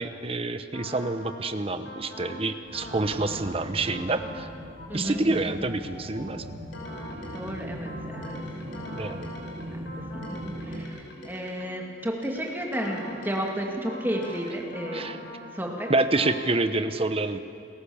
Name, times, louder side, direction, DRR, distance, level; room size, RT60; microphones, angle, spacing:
voice 1, 0.0-4.5 4.9-6.4 9.0-9.3 14.9-15.2 15.9-17.4, right 2 dB, 30° right, 10 dB, 0.9 m, -27 dB
sound 1, 0.7-1.4 1.8-2.4 2.7-3.4 3.8-4.4 4.8-11.8 12.2-15.4 15.8-16.4, left 1 dB, 80° left, 5.5 m, -42 dB
sound 2, 2.7-10.8, equal, 70° right, 2.3 m, -40 dB
voice 2, 4.9-5.6 7.3-8.6 9.7-10.2 10.6-15.1 15.5-15.9, equal, 10° right, 0 dB, 2.4 m, -32 dB
28.5 x 14.5 x 7.1 m, 2.5 s
head